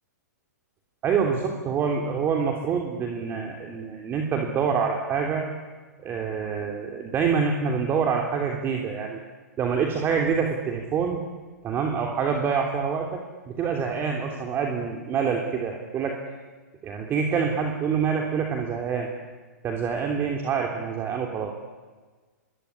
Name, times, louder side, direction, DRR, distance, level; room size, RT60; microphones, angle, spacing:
voice 1, 1.0-5.5 6.0-9.2 9.6-11.2 11.6-16.1 16.8-19.1 19.6-21.5, right 6 dB, 25° right, 2 dB, 3.3 m, -26 dB
26.0 x 21.5 x 9.9 m, 1.4 s
hypercardioid pair, 135°, 9 cm